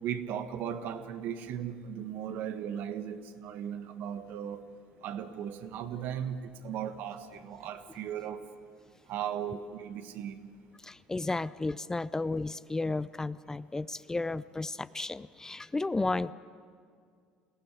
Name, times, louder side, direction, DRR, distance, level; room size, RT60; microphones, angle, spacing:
voice 1, 0.0-4.6 5.0-8.4 9.1-10.5, right 9 dB, 65° right, 10 dB, 1.4 m, -37 dB
voice 2, 10.8-16.3, left 3 dB, 15° left, 17 dB, 0.5 m, -33 dB
21.5 x 16.0 x 9.9 m, 2.2 s
hypercardioid pair, 70°, 3 cm